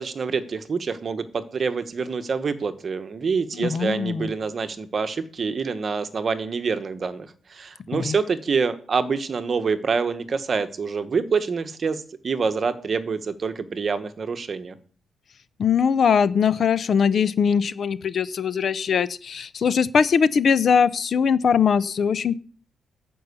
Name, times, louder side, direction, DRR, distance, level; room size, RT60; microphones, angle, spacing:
voice 1, 0.0-14.8, right 5 dB, 35° right, 11 dB, 1.1 m, -26 dB
voice 2, 3.6-4.3 7.9-8.1 15.6-22.4, left 6 dB, 45° left, 17 dB, 0.6 m, -21 dB
12.5 x 5.5 x 8.2 m, 0.43 s
cardioid pair, 130°, 0 cm